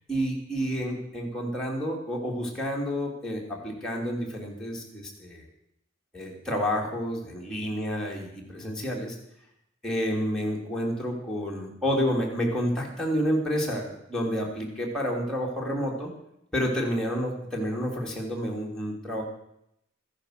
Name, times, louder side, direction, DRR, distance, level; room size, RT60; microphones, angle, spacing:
voice 1, 0.1-5.4 6.1-9.1 9.8-16.1 16.5-19.2, equal, 5° left, -3 dB, 3.2 m, -29 dB
14.5 x 10.5 x 6.7 m, 0.78 s
head